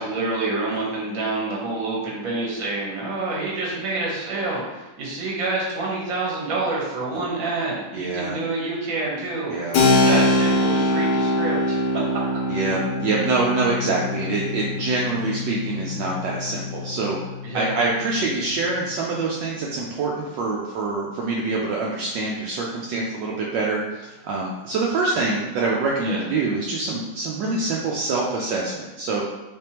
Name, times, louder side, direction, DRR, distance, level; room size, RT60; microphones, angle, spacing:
voice 1, 0.0-11.8 17.4-17.7 22.9-23.1 26.0-26.2, right 3 dB, 50° right, -4 dB, 1.3 m, -27 dB
voice 2, 7.9-8.4 9.5-9.8 10.1-10.3 12.5-29.2, right 3 dB, 75° right, -3 dB, 1.2 m, -25 dB
Keyboard (musical), 9.7-18.1, left 1 dB, 90° left, 1.4 m, -23 dB
3.5 x 3.3 x 2.8 m, 1.1 s
omnidirectional pair, 2.0 m